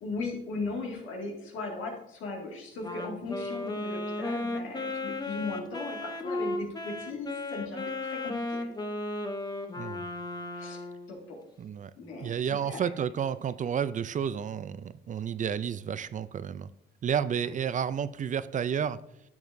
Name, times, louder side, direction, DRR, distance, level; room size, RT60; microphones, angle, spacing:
voice 1, 0.0-8.6 10.5-11.4 12.0-12.3 12.6-12.8, left 3 dB, 85° left, 0 dB, 2.2 m, -37 dB
Wind instrument woodwind instrument, 2.8-11.1, left 2 dB, 20° left, 0.9 m, -35 dB
voice 2, 11.6-11.9 12.2-16.7 17.0-19.0, right 8 dB, 40° right, 15 dB, 0.4 m, -31 dB
11.0 x 7.2 x 2.6 m, 0.79 s
cardioid pair, 90°, 20 cm